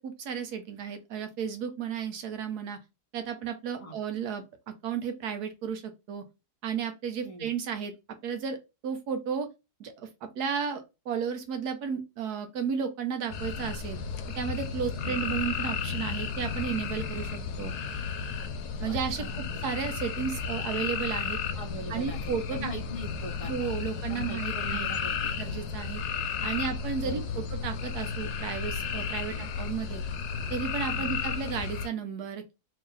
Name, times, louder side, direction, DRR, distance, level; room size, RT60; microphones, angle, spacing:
voice 1, 0.0-2.8 3.1-6.2 6.6-7.9 8.2-8.6 8.8-9.5 9.8-14.0 14.3-17.7 18.8-19.2 19.6-21.4 21.9-22.7 23.5-24.9 25.4-26.0 26.4-30.0 30.5-32.5, right 7 dB, 70° right, 1.3 m, -33 dB
sound 1, 13.3-31.9, left 6 dB, 70° left, 1.2 m, -33 dB
voice 2, 18.8-19.6 21.5-25.5 27.0-27.4 29.2-29.5 30.9-31.2, right 3 dB, 30° left, 0.7 m, -42 dB
3.1 x 2.8 x 3.7 m
omnidirectional pair, 1.8 m